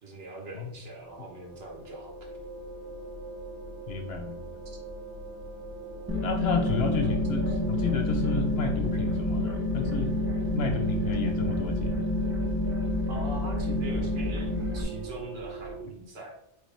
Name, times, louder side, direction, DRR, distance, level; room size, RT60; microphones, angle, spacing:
voice 1, 0.0-2.2 13.1-16.4, right 1 dB, 60° right, 1 dB, 1.2 m, -41 dB
sound 1, 0.9-15.8, right 3 dB, 85° right, 1.3 m, -41 dB
voice 2, 3.9-4.5 6.2-10.1 10.5-11.9, left 4 dB, 65° left, 6 dB, 0.7 m, -31 dB
sound 2, 6.1-14.8, left 2 dB, 15° right, 0.6 m, -28 dB
4.4 x 3.2 x 3.2 m, 0.76 s
omnidirectional pair, 1.2 m